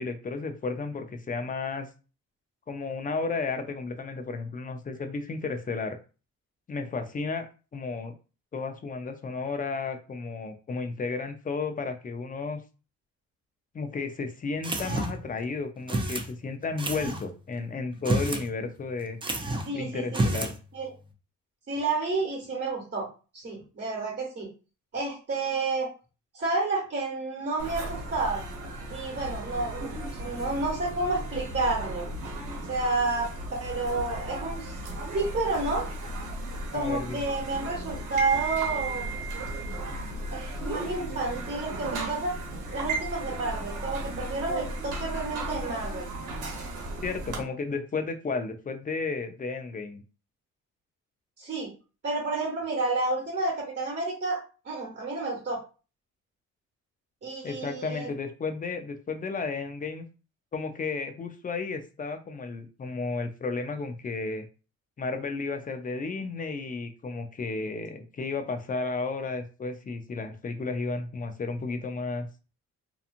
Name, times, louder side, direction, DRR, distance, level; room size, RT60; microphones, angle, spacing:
voice 1, 0.0-1.9 2.7-6.0 6.7-7.5 7.7-8.1 8.5-12.6 13.7-19.2 19.7-20.5 36.7-37.2 47.0-50.0 57.4-60.1 60.5-64.5 65.0-72.3, left 4 dB, 25° left, 6 dB, 0.5 m, -33 dB
sound 1, 14.6-15.3 15.9-16.3 16.8-17.2 17.9-18.5 18.7-18.8 19.2-19.7 20.1-20.6, right 1 dB, 15° right, 0.6 m, -29 dB
voice 2, 19.7-20.2 20.7-20.9 21.7-23.1 23.3-24.5 24.9-25.9 26.3-28.4 28.9-32.1 32.7-34.8 35.1-35.9 36.7-39.1 40.3-42.3 42.7-46.1 51.4-51.7 52.0-54.4 54.6-55.6 57.2-58.1, right 3 dB, 35° right, -2 dB, 1.3 m, -30 dB
sound 2, 27.6-47.4, right 2 dB, 80° right, 1.1 m, -35 dB
2.9 x 2.3 x 2.5 m, 0.34 s
cardioid pair, 90°, 30 cm